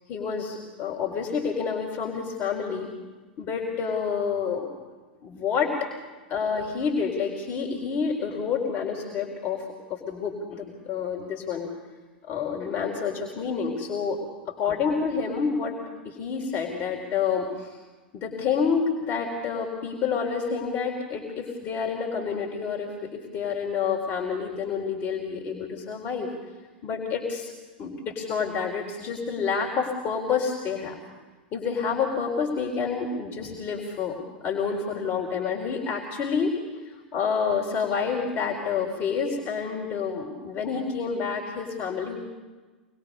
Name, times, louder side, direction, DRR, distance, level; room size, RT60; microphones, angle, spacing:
voice 1, 0.1-2.9 3.4-4.7 5.2-5.9 6.3-11.7 12.3-14.2 14.6-15.8 16.0-17.8 18.1-26.3 26.8-27.5 27.8-31.0 31.5-36.6 36.9-42.2, left 6 dB, 35° left, 0 dB, 4.0 m, -28 dB
25.0 x 21.5 x 5.5 m, 1.3 s
figure-of-eight pair, 90°, 6 cm